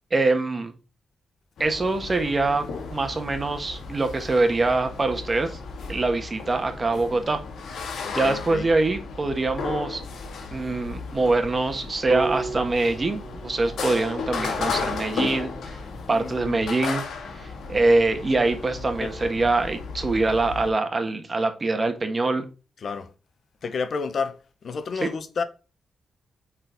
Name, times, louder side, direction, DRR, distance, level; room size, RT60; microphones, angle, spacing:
voice 1, 0.1-0.7 1.6-2.6 2.9-5.6 5.9-7.4 8.1-10.0 10.5-15.8 16.1-17.0 17.3-22.4, right 3 dB, 35° right, 1.6 m, -24 dB
sound 1, 1.6-20.7, left 4 dB, 80° left, 1.8 m, -34 dB
voice 2, 8.0-8.7 13.6-13.7 16.1-16.7 19.0-19.2 22.8-23.1 23.6-25.4, left 5 dB, 60° left, 0.9 m, -31 dB
sound 2, 12.1-16.2, right 4 dB, 70° right, 1.6 m, -35 dB
8.2 x 4.4 x 4.0 m
cardioid pair, 80°, 0 cm